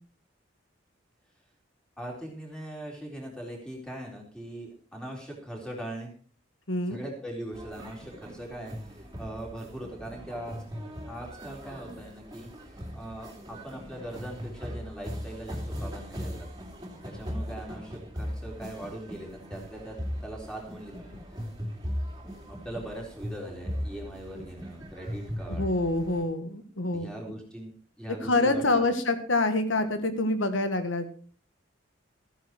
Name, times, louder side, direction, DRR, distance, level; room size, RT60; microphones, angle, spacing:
voice 1, 2.0-6.1 6.9-10.6 11.1-16.5 17.0-20.0 20.2-21.2 22.5-25.7 26.9-27.7 28.0-28.8, right 1 dB, 5° left, -1 dB, 3.8 m, -40 dB
voice 2, 6.7-7.0 25.5-27.4 28.2-31.1, left 2 dB, 80° left, 9 dB, 1.8 m, -26 dB
sound 1, 7.5-26.2, equal, 20° right, 2.7 m, -39 dB
14.5 x 9.8 x 4.5 m, 0.43 s
head